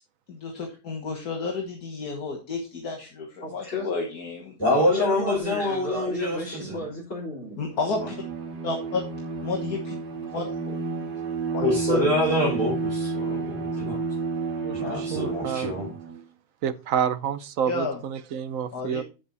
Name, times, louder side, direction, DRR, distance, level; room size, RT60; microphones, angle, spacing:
voice 1, 0.3-4.6 7.6-8.2 8.6-9.0 9.4-9.9 10.3-10.4 11.5-12.0 17.7-18.0 18.7-19.0, left 3 dB, 75° left, 2.0 m, -31 dB
voice 2, 3.4-3.9 4.8-7.7 10.3-10.8, equal, 45° left, 4.0 m, -35 dB
voice 3, 4.6-6.8 11.6-14.0 14.7-15.9, left 1 dB, 10° left, 6.3 m, -25 dB
Bowed string instrument, 7.7-16.2, right 4 dB, 85° right, 2.0 m, -31 dB
voice 4, 14.6-15.7 16.6-19.0, right 8 dB, 65° right, 1.1 m, -29 dB
9.1 x 7.6 x 4.1 m
omnidirectional pair, 1.7 m